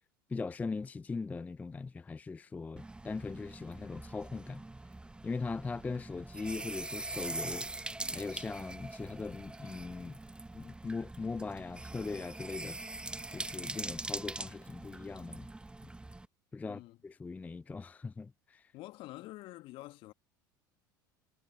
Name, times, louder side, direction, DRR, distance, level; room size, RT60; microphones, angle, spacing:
voice 1, 0.3-4.6 5.2-7.7 8.1-10.2 10.5-12.8 13.3-15.5 16.5-18.7, left 4 dB, 15° left, 0.4 m, -40 dB
sound 1, 2.8-16.3, right 2 dB, 10° right, 0.8 m, -43 dB
voice 2, 16.6-17.0 18.7-20.1, left 18 dB, 50° left, 2.0 m, -47 dB
figure-of-eight pair, 70°, 11 cm